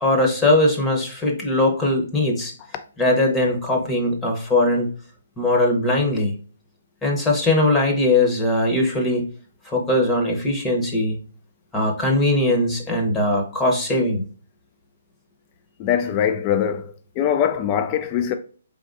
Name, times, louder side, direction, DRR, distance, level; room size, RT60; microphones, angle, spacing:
voice 1, 0.0-2.5 3.0-4.9 5.4-6.3 7.0-9.3 9.7-11.2 11.7-14.2, left 1 dB, 10° left, 0.8 m, -20 dB
voice 2, 15.8-18.3, left 9 dB, 25° left, 0.3 m, -22 dB
4.6 x 3.5 x 2.5 m
hypercardioid pair, 160°, 0 cm